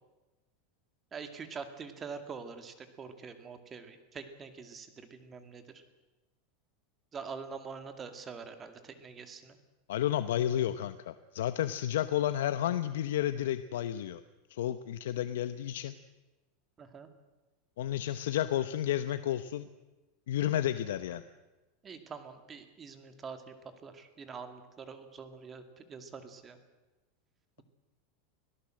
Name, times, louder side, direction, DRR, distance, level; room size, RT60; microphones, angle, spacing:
voice 1, 1.1-5.6 7.1-9.6 16.8-17.1 21.8-23.5 23.8-26.6, right 5 dB, 20° right, 8 dB, 2.2 m, -45 dB
voice 2, 9.9-14.2 14.5-15.9 17.8-19.7 20.3-21.2, left 11 dB, 85° left, 12 dB, 0.8 m, -31 dB
25.0 x 17.0 x 7.7 m, 1.1 s
supercardioid pair, 145°, 0 cm